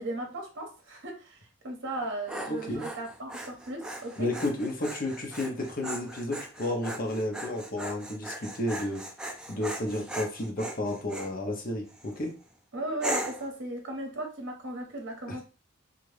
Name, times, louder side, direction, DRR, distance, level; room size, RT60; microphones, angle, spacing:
voice 1, 0.0-4.3 12.7-15.4, right 1 dB, 65° right, 0.7 m, -36 dB
Dog, 1.9-11.3 11.9-12.3 13.0-13.5, right 1 dB, 5° right, 0.4 m, -38 dB
voice 2, 2.5-2.8 4.2-9.0 9.5-12.3, left 1 dB, 45° left, 0.8 m, -32 dB
2.7 x 2.4 x 3.2 m
head